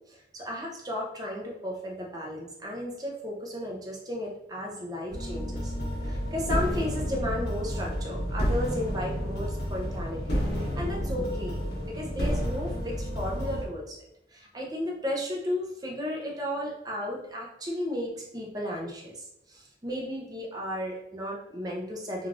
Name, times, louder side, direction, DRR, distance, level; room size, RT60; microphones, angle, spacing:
voice 1, 0.1-5.7 6.0-11.6 11.8-14.0 14.3-22.3, left 1 dB, 20° right, -2 dB, 0.5 m, -34 dB
sound 1, 5.1-13.6, equal, 65° left, 1.1 m, -30 dB
3.2 x 2.3 x 2.5 m, 0.82 s
head